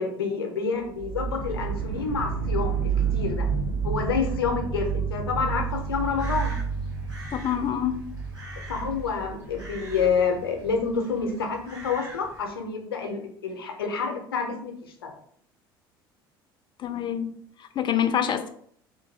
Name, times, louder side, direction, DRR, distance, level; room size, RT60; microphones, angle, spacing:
voice 1, 0.0-3.5 3.8-6.5 8.7-14.7 15.0-15.1, left 5 dB, 85° left, 3 dB, 0.7 m, -28 dB
sound 1, 0.9-10.8, right 6 dB, 60° right, 0.6 m, -30 dB
Crow, 5.7-12.5, right 1 dB, 30° right, 1.7 m, -45 dB
voice 2, 7.3-8.0 16.8-17.3 17.6-18.5, left 9 dB, 40° left, 8 dB, 0.5 m, -26 dB
3.8 x 2.6 x 3.8 m, 0.64 s
hypercardioid pair, 65°, 12 cm